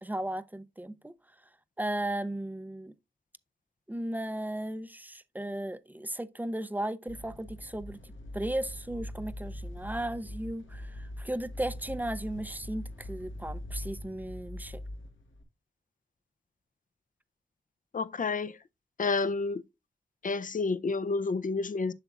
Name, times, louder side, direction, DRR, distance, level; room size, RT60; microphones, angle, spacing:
voice 1, 0.0-1.1 1.8-2.9 3.9-8.0 8.3-14.8, right 1 dB, 10° right, 0.5 m, -35 dB
sound 1, 7.1-15.4, left 1 dB, 85° left, 1.3 m, -42 dB
voice 2, 17.9-18.5 19.0-19.6 20.2-21.9, left 4 dB, 45° left, 0.5 m, -29 dB
7.8 x 7.0 x 2.4 m
wide cardioid pair, 80°, 19 cm